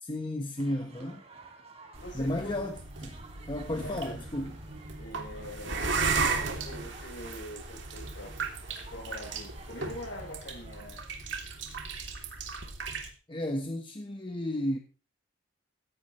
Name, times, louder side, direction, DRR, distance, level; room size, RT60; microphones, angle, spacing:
voice 1, 0.0-1.2 2.1-3.2 3.5-4.5 13.3-14.8, left 1 dB, 25° left, 1.3 m, -33 dB
sound 1, 0.6-11.1, right 3 dB, 35° right, 4.0 m, -54 dB
sound 2, 1.9-13.1, right 4 dB, 65° right, 3.2 m, -35 dB
voice 2, 2.0-2.6 3.7-4.2 5.0-8.4 8.9-11.0, left 1 dB, 65° left, 5.8 m, -43 dB
16.5 x 15.0 x 3.3 m
head